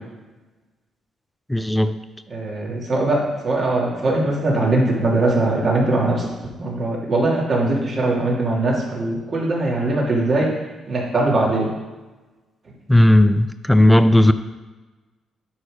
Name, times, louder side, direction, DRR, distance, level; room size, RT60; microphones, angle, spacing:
voice 1, 1.5-2.0 12.9-14.3, left 1 dB, 5° left, 11 dB, 0.5 m, -14 dB
voice 2, 2.3-6.3 6.6-10.5 10.9-11.7, right 2 dB, 45° right, -3 dB, 2.5 m, -21 dB
9.9 x 4.2 x 5.0 m, 1.2 s
cardioid pair, 90°, 0 cm